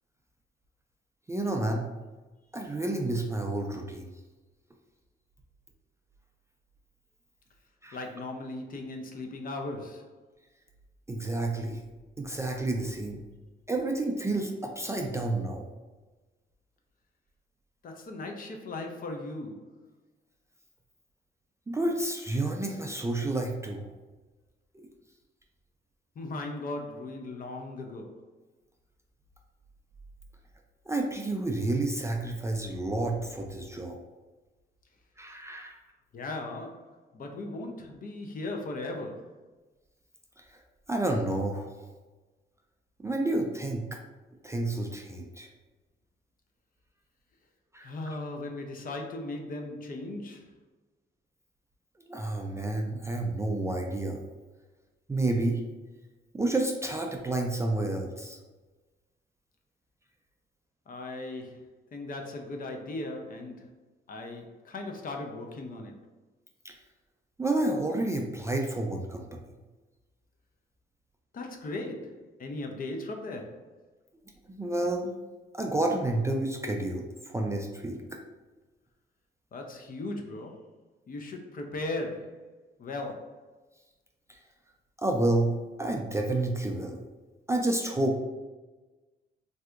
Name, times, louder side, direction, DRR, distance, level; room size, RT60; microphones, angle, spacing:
voice 1, 1.3-1.9 2.5-4.1 7.8-8.0 11.1-11.8 12.2-13.2 13.7-15.7 21.7-23.9 24.7-24.9 30.9-34.0 35.2-35.8 40.4-40.6 40.9-41.9 43.0-44.0 44.4-45.5 47.7-47.9 52.0-54.2 55.1-55.6 56.3-58.4 66.6-66.7 67.4-69.4 74.5-75.1 75.5-78.2 84.3-84.4 85.0-87.0 87.5-88.2, right 2 dB, 15° right, 1 dB, 0.3 m, -30 dB
voice 2, 7.9-10.2 17.8-19.8 26.2-28.3 36.1-39.4 47.8-50.5 60.9-63.7 64.1-66.1 71.3-73.7 79.5-80.7 81.1-82.5 82.8-83.5, left 2 dB, 45° left, 3 dB, 0.5 m, -38 dB
3.4 x 2.7 x 2.4 m, 1.2 s
cardioid pair, 90°, 20 cm